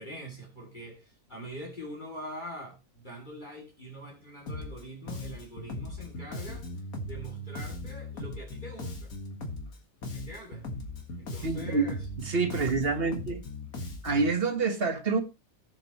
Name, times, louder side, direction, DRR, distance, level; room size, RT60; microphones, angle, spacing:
voice 1, 0.0-6.7 7.0-9.1 10.1-10.7 11.2-12.1, equal, 35° left, 3.1 m, -44 dB
Bass guitar, 4.5-4.8 5.1-9.8 10.0-14.3, left 1 dB, 85° left, 2.3 m, -38 dB
voice 2, 11.4-13.4 14.0-15.2, right 4 dB, 45° right, 1.6 m, -27 dB
18.0 x 7.2 x 3.1 m
omnidirectional pair, 1.5 m